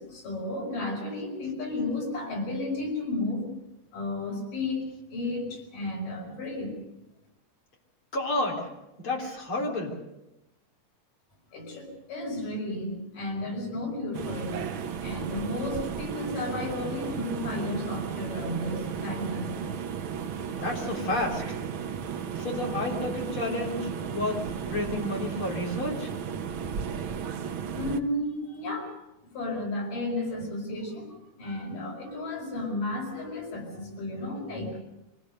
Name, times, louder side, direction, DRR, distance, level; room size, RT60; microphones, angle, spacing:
voice 1, 0.0-3.5 3.9-6.7 11.5-14.6 15.0-19.6 27.7-28.9 29.2-34.8, left 2 dB, 85° left, 0 dB, 6.8 m, -33 dB
voice 2, 8.1-8.7 9.0-10.0 20.5-21.4 22.3-26.1, left 2 dB, 40° left, 0 dB, 4.5 m, -30 dB
sound 1, 14.1-28.0, right 7 dB, 75° right, 1.1 m, -34 dB
24.5 x 18.0 x 6.7 m, 0.94 s
omnidirectional pair, 3.6 m